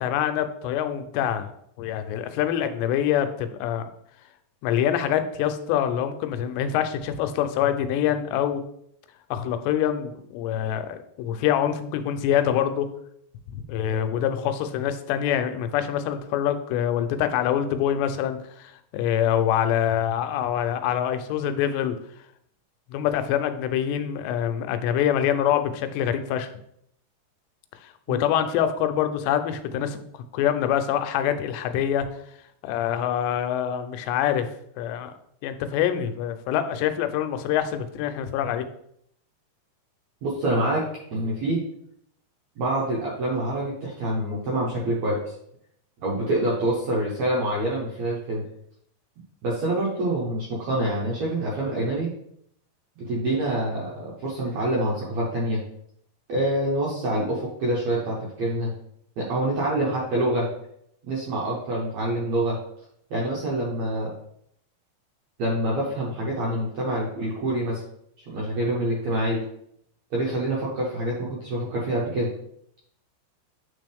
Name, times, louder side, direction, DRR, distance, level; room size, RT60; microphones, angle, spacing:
voice 1, 0.0-1.5 1.8-3.8 4.6-8.6 9.3-12.9 13.5-22.0 22.9-26.5 28.1-30.0 30.3-32.1 32.6-35.1 35.4-38.7, left 10 dB, 85° left, 9 dB, 2.8 m, -25 dB
voice 2, 40.2-41.6 42.6-45.3 46.0-48.4 49.4-52.1 53.0-55.6 56.3-58.7 59.2-60.5 61.0-62.6 63.1-64.1 65.4-67.8 68.3-69.4 70.1-72.3, right 1 dB, 70° right, -5 dB, 1.7 m, -26 dB
9.1 x 3.7 x 3.4 m, 0.72 s
omnidirectional pair, 4.9 m